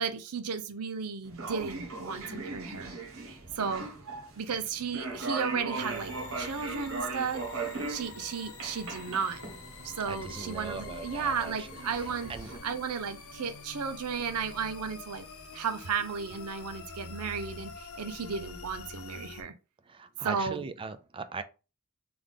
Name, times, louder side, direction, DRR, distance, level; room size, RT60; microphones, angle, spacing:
voice 1, 0.0-3.0 3.6-3.9 4.4-7.4 7.9-9.4 9.8-12.3 12.6-15.3 15.5-19.5 20.2-20.6, right 6 dB, 85° right, 0.6 m, -34 dB
sound 1, 1.2-12.6, right 3 dB, 65° right, 1.1 m, -39 dB
sound 2, 5.8-19.4, left 4 dB, 65° left, 0.8 m, -46 dB
voice 2, 10.1-11.7 12.3-12.5 19.9-21.4, right 4 dB, 25° right, 0.3 m, -39 dB
3.7 x 3.4 x 3.5 m
head